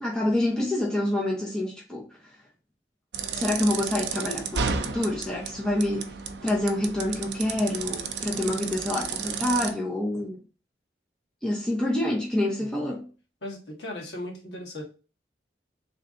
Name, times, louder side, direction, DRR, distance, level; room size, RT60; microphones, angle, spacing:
voice 1, 0.0-2.4 3.3-10.4 11.4-13.1, left 1 dB, 5° left, 0.7 m, -27 dB
sound 1, 3.1-9.7, right 6 dB, 80° right, 0.5 m, -32 dB
voice 2, 13.4-14.8, left 1 dB, 80° left, 1.5 m, -37 dB
3.4 x 2.7 x 3.6 m
head